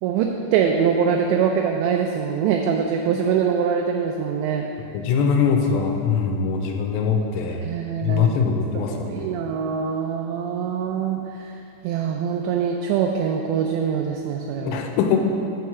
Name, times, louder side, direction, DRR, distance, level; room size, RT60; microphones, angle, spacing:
voice 1, 0.0-4.7 7.6-8.4 8.9-11.5 11.8-14.8, right 7 dB, 85° right, 2 dB, 2.6 m, -23 dB
voice 2, 4.9-7.6 8.0-9.4 14.6-15.2, left 6 dB, 85° left, 3 dB, 2.8 m, -22 dB
7.6 x 4.7 x 6.8 m, 2.6 s
omnidirectional pair, 5.2 m